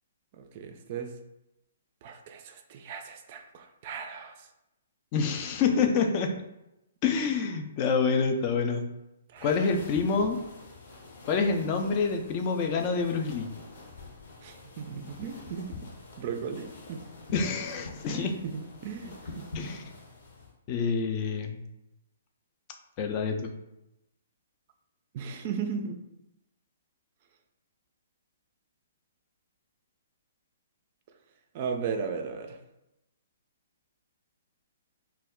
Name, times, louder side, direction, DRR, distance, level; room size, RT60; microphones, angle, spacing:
voice 1, 0.4-1.1 2.0-4.4 9.3-9.7 14.4-15.7 16.2-17.1 18.1-19.4 25.1-26.0 31.5-32.6, right 6 dB, 45° right, 6 dB, 0.3 m, -36 dB
voice 2, 5.1-6.3 7.0-8.9 9.4-10.4 11.2-13.5 17.3-18.3 19.5-19.8 20.7-21.6 23.0-23.5, left 5 dB, 35° left, 4 dB, 0.4 m, -27 dB
sound 1, 9.4-20.5, left 3 dB, 60° left, 0.8 m, -46 dB
2.2 x 2.0 x 3.6 m, 0.90 s
figure-of-eight pair, 125°, 0 cm